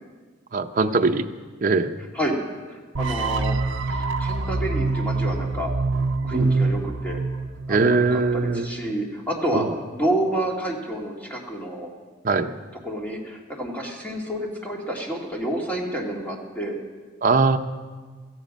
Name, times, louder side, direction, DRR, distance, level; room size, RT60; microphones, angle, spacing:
voice 1, 0.5-1.3 1.6-1.9 6.3-6.5 7.7-8.7 9.5-9.7 12.2-12.5 17.2-17.6, right 3 dB, 45° right, 5 dB, 0.7 m, -21 dB
voice 2, 2.7-5.7 6.2-7.2 7.7-11.9 12.8-16.8, right 1 dB, 10° left, -1 dB, 2.3 m, -29 dB
sound 1, 2.9-8.0, right 3 dB, 80° right, 0.7 m, -25 dB
16.5 x 14.5 x 5.3 m, 1.4 s
head